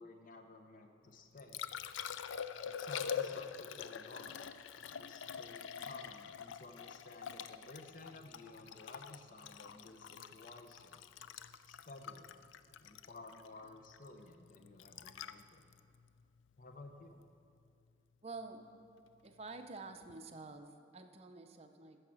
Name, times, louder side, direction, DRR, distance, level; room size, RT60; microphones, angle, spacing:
voice 1, 0.0-1.6 2.6-4.4 5.0-11.0 11.7-12.4 12.8-15.6 16.6-17.2, left 2 dB, 45° left, 5 dB, 0.8 m, -54 dB
Liquid, 1.1-17.2 20.0-20.2, left 8 dB, 75° left, 0.4 m, -45 dB
voice 2, 18.2-18.7 19.2-22.0, right 3 dB, 30° right, 6 dB, 0.6 m, -49 dB
13.0 x 4.8 x 7.6 m, 2.4 s
head